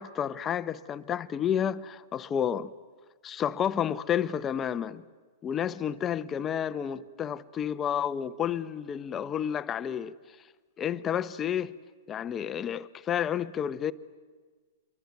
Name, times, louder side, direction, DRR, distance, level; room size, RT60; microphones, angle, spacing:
voice 1, 0.0-2.7 3.2-5.0 5.4-10.1 10.8-11.7 12.1-13.9, left 9 dB, 25° left, 0.9 m, -30 dB
26.5 x 23.0 x 9.5 m
hypercardioid pair, 135°, 0 cm